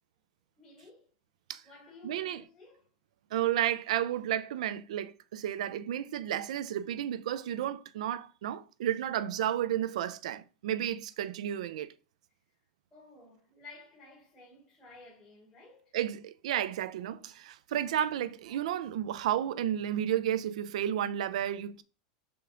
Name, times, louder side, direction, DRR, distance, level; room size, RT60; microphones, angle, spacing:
voice 1, 0.6-1.1 1.6-2.9 12.9-16.0, left 3 dB, 15° left, 3.5 m, -54 dB
voice 2, 2.0-2.4 3.3-11.9 15.9-21.8, right 11 dB, 80° right, 0.5 m, -32 dB
5.7 x 5.1 x 3.8 m
supercardioid pair, 150°, 4 cm